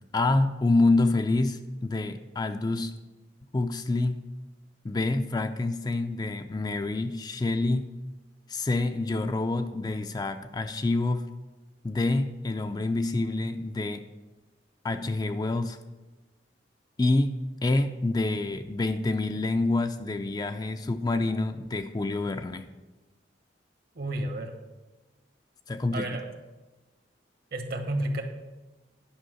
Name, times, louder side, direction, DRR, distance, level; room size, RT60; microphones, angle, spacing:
voice 1, 0.1-2.9 3.5-4.3 4.8-7.9 8.5-11.3 11.8-14.1 14.8-15.8 17.0-22.7 25.7-26.1, left 2 dB, 20° left, 8 dB, 0.4 m, -27 dB
voice 2, 23.9-24.5 25.9-26.3 27.5-28.2, right 1 dB, 55° right, 6 dB, 1.2 m, -31 dB
10.0 x 5.4 x 6.3 m, 1.2 s
head